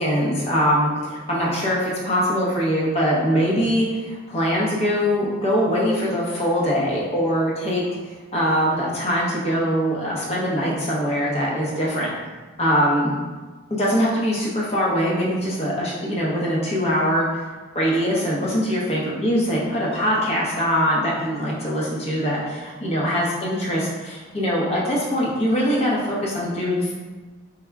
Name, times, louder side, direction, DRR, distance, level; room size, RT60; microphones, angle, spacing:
voice 1, 0.0-7.8 8.3-12.1 12.6-13.1 13.8-17.4 17.7-26.9, equal, 30° left, -5 dB, 0.7 m, -22 dB
3.4 x 2.1 x 3.4 m, 1.3 s
head